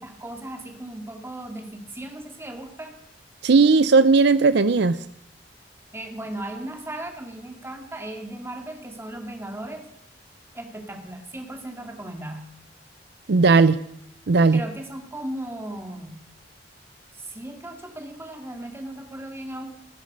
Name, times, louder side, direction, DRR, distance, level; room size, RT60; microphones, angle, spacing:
voice 1, 0.0-2.9 5.9-9.8 10.5-12.5 14.5-16.2 17.1-19.6, right 1 dB, 15° right, 4 dB, 2.3 m, -36 dB
voice 2, 3.4-5.0 13.3-13.8 14.3-14.6, right 4 dB, 70° right, 14 dB, 0.6 m, -16 dB
19.0 x 10.0 x 5.4 m, 0.71 s
head